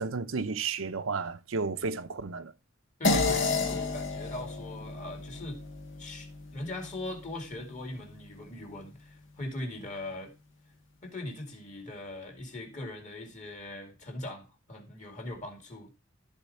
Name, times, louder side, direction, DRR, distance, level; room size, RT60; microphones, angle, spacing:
voice 1, 0.0-2.5, right 4 dB, 75° right, 0.7 m, -32 dB
sound 1, 3.0-7.8, left 3 dB, 65° left, 1.8 m, -31 dB
voice 2, 3.0-5.6 6.0-10.3 11.0-16.0, left 1 dB, 35° left, 2.6 m, -40 dB
13.5 x 4.6 x 4.2 m
head